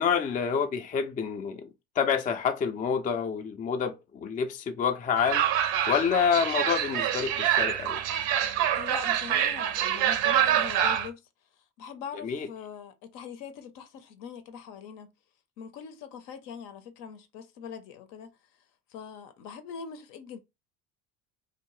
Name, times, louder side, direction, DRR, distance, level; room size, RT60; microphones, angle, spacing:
voice 1, 0.0-1.7 2.0-5.4 5.9-8.0 12.2-12.5, left 7 dB, 25° left, 0.4 m, -27 dB
sound 1, 5.2-11.1, right 10 dB, 65° right, 0.6 m, -26 dB
voice 2, 8.7-11.2 11.8-15.1 15.6-18.3 18.9-20.4, left 7 dB, 60° left, 0.6 m, -42 dB
2.7 x 2.1 x 3.0 m
hypercardioid pair, 75°, 37 cm